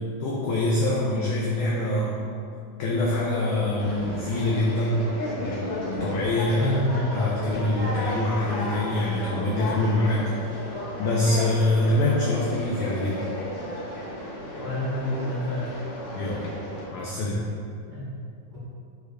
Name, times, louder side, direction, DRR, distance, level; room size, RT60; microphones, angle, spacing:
voice 1, 0.0-2.2 2.8-5.1 5.4-6.7 7.1-10.6 11.0-13.3 16.2-16.5 16.9-17.5, left 1 dB, 90° left, -4 dB, 1.7 m, -25 dB
Conversation, 3.8-16.8, left 1 dB, 60° left, 1.6 m, -33 dB
voice 2, 6.5-7.1 14.6-15.7 17.9-18.1 18.5-18.6, left 1 dB, 70° right, -12 dB, 0.9 m, -28 dB
6.5 x 5.9 x 3.4 m, 2.4 s
omnidirectional pair, 4.5 m